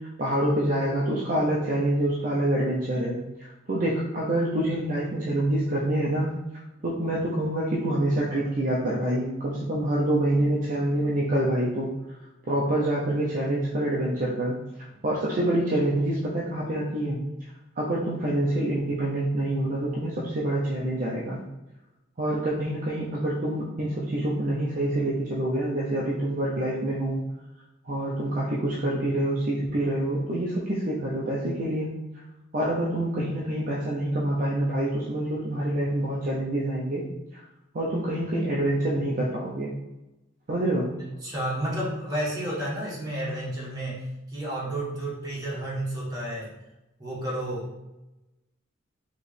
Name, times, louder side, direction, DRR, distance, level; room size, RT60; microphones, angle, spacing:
voice 1, 0.2-11.9 12.5-14.6 15.0-17.2 17.8-21.4 22.2-27.2 27.8-31.9 32.5-37.1 37.3-37.4 37.7-39.7 40.5-40.9, right 1 dB, 45° right, -5 dB, 0.6 m, -26 dB
voice 2, 41.0-44.0 44.3-46.5 47.0-47.8, right 1 dB, 20° right, -7 dB, 1.5 m, -31 dB
4.6 x 3.0 x 3.3 m, 1.0 s
head